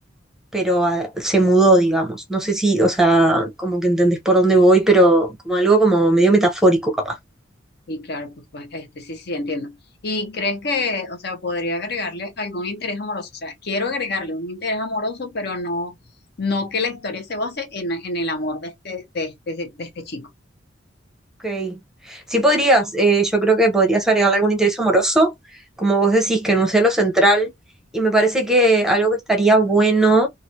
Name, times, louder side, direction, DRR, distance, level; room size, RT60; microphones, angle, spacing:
voice 1, 0.5-7.2 21.4-21.8 22.1-25.3 25.8-27.5 27.9-30.3, right 2 dB, 5° right, 0.8 m, -17 dB
voice 2, 7.9-9.8 10.0-15.9 16.4-20.3, left 2 dB, 55° left, 0.8 m, -27 dB
3.2 x 2.4 x 2.7 m
head